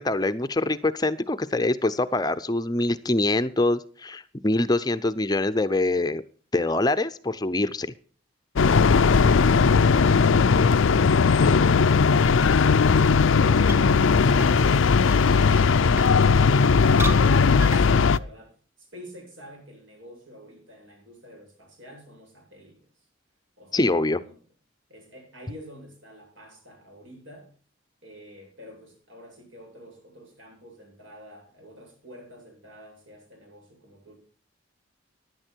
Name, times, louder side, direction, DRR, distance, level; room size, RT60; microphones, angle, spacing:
voice 1, 0.0-6.2 6.5-7.9 23.7-24.2, left 2 dB, 20° left, 11 dB, 0.6 m, -24 dB
sound 1, 8.6-18.2, left 5 dB, 85° left, 0.5 m, -18 dB
voice 2, 9.1-23.1 23.6-24.4 24.9-27.5 28.0-34.1, equal, 75° right, 1 dB, 7.9 m, -48 dB
sound 2, 11.6-18.2, right 2 dB, 10° right, 0.8 m, -39 dB
15.5 x 11.0 x 4.5 m, 0.41 s
head